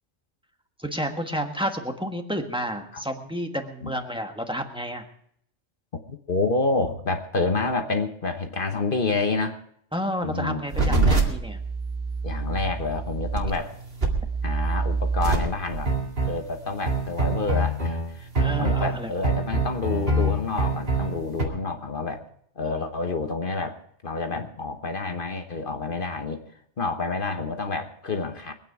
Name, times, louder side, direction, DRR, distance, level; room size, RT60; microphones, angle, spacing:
voice 1, 0.8-5.0 9.9-11.6 18.4-19.1, equal, 5° right, 3 dB, 1.4 m, -30 dB
voice 2, 5.9-9.6 10.2-11.2 12.2-13.7 14.4-15.9 16.2-18.3 18.6-22.2 22.6-26.4 26.8-28.5, left 3 dB, 45° left, 6 dB, 1.2 m, -28 dB
sound 1, 10.7-21.4, right 3 dB, 50° right, 2.4 m, -25 dB
23.5 x 9.1 x 4.7 m, 0.67 s
omnidirectional pair, 1.3 m